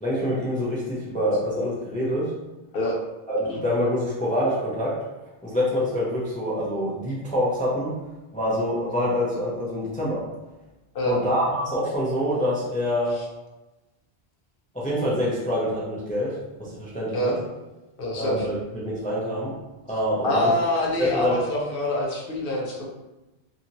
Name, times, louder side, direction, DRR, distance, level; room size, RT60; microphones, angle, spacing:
voice 1, 0.0-2.3 3.3-5.0 5.4-7.9 8.3-10.2 11.0-13.2 14.7-16.3 16.6-17.4 18.1-19.5 19.9-20.5 21.0-21.4, equal, 10° left, -7 dB, 0.5 m, -26 dB
voice 2, 18.0-18.5 20.2-22.9, left 1 dB, 60° left, -2 dB, 0.8 m, -25 dB
2.8 x 2.8 x 2.6 m, 1.1 s
omnidirectional pair, 1.1 m